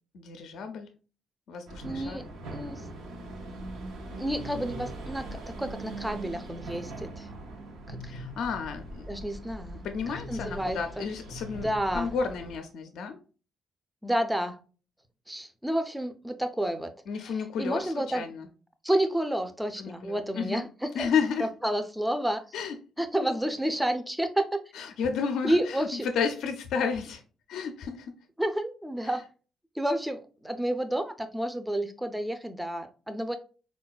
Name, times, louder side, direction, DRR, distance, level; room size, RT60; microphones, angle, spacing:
voice 1, 0.1-0.9 1.5-2.2 8.1-9.1 9.8-11.7 11.9-13.2 17.1-18.5 19.8-20.6 20.9-21.5 22.5-22.8 24.7-25.9 26.1-27.2 27.5-28.1, left 6 dB, 75° left, 6 dB, 0.4 m, -32 dB
sound 1, 1.7-12.6, right 1 dB, 90° right, 0.6 m, -41 dB
voice 2, 1.8-2.8 4.2-7.3 7.9-8.1 9.1-11.1 11.5-12.1 14.0-14.6 15.3-16.9 17.3-18.2 18.8-21.1 21.4-22.4 23.0-24.5 25.4-26.1 28.4-29.2 29.8-33.4, right 1 dB, 5° right, 8 dB, 0.4 m, -30 dB
3.7 x 2.2 x 2.3 m, 0.36 s
cardioid pair, 90°, 0 cm